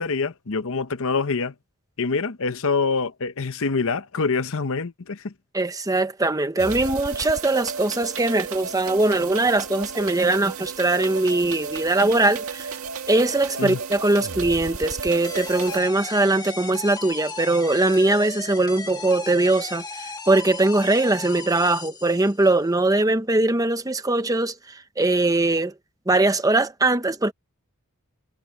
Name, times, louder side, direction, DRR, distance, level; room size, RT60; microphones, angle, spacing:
voice 1, 0.0-1.5 2.0-5.3 13.6-13.8, left 4 dB, 65° left, 0.9 m, -25 dB
voice 2, 5.5-12.8 13.1-24.6 25.0-25.7 26.1-27.3, right 2 dB, 15° right, 1.1 m, -21 dB
sound 1, 6.6-15.8, right 5 dB, 65° right, 2.1 m, -33 dB
sound 2, 15.2-22.6, left 4 dB, 20° left, 1.7 m, -36 dB
head